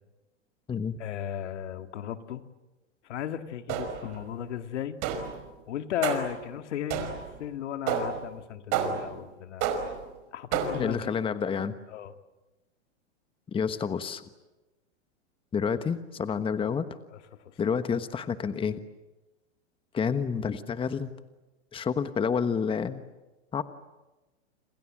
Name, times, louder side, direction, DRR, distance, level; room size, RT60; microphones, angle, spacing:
voice 1, 1.0-2.5 3.0-5.0 5.7-7.1 7.4-9.7 10.3-11.2 11.9-12.1 17.1-17.2 17.5-17.6, left 10 dB, 75° left, 8 dB, 2.1 m, -35 dB
sound 1, 3.7-4.2 5.0-5.4 6.0-6.4 6.9-7.4 7.9-8.3 8.7-9.2 9.6-10.1 10.5-11.0, right 7 dB, 45° right, 5.2 m, -30 dB
voice 2, 10.8-11.8 13.5-14.2 15.5-16.9 17.6-18.8 19.9-21.1 21.7-23.0 23.5-23.6, left 6 dB, 15° left, 11 dB, 1.2 m, -29 dB
28.5 x 27.5 x 7.6 m, 1.1 s
hypercardioid pair, 125°, 35 cm